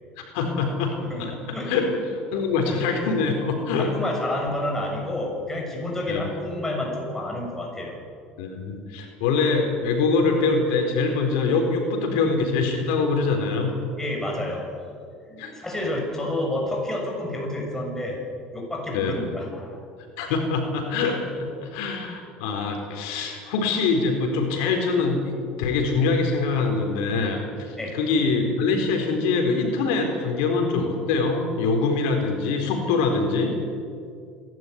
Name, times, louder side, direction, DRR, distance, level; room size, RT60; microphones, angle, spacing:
voice 1, 0.2-3.9 6.1-6.2 8.4-13.7 15.4-15.5 18.9-19.2 20.2-21.2 21.6-33.6, left 4 dB, 80° left, 3 dB, 4.2 m, -24 dB
voice 2, 1.0-1.8 3.8-8.0 14.0-14.9 15.3-18.3 18.5-19.8 21.6-21.8 27.8-28.0, left 1 dB, 10° left, -1 dB, 7.0 m, -30 dB
27.0 x 12.5 x 9.5 m, 2.3 s
supercardioid pair, 100°, 4 cm